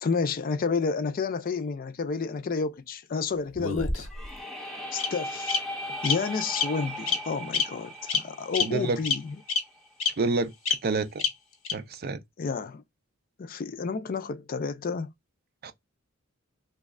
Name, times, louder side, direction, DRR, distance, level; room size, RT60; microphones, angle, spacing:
voice 1, 0.0-4.1 4.9-5.6 6.0-9.4 12.4-12.8 13.4-15.1, left 5 dB, 45° left, 0.4 m, -30 dB
Bird vocalization bird call bird song, 3.6-4.3 5.0-5.1 5.5-5.6 6.0-6.1 6.5-6.7 7.1-7.2 7.5-7.6 8.1-8.2 8.5-8.6 9.0-9.1 9.5-9.6 10.0-10.1 10.7-10.8 11.2-11.3 11.6-11.7, left 6 dB, 80° left, 1.2 m, -26 dB
sound 1, 4.0-9.9, equal, ahead, 0.7 m, -38 dB
voice 2, 8.6-9.0 10.2-10.5 10.8-11.2 11.7-12.2 15.6-15.7, right 3 dB, 45° right, 0.4 m, -28 dB
3.1 x 2.3 x 3.5 m
head